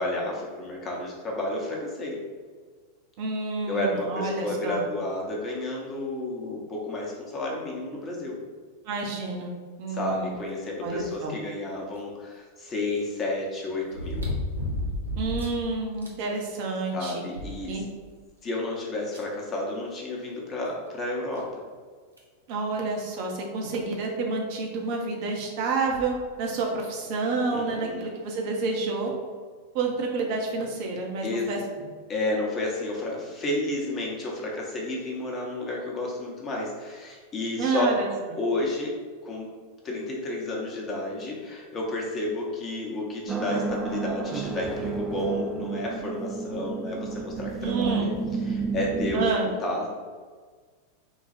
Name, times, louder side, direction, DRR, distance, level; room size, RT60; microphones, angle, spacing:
voice 1, 0.0-2.2 3.7-8.4 9.9-14.2 16.9-17.7 18.4-21.5 27.5-28.0 31.2-31.5 32.1-37.9 38.3-38.9 39.2-39.5 39.8-48.1 48.4-49.9, left 2 dB, 25° left, -2 dB, 1.0 m, -31 dB
voice 2, 3.2-4.8 8.8-10.4 10.8-11.4 15.2-17.2 17.7-17.8 22.5-29.1 29.7-31.9 37.6-38.1 47.6-48.1 49.1-49.5, right 3 dB, 45° right, 0 dB, 0.8 m, -29 dB
sound 1, 12.0-12.1 13.9-15.6 16.0-16.1 16.6-16.7 17.0-18.1 19.1-19.2 20.7-20.8 21.3-21.4 22.2-22.4 23.7-23.8 24.0-24.1 25.8-26.1 26.8-26.9, left 1 dB, 80° right, 0.8 m, -32 dB
sound 2, 43.3-49.2, right 5 dB, 20° right, 0.4 m, -31 dB
3.8 x 2.3 x 4.3 m, 1.5 s
figure-of-eight pair, 90°, 0 cm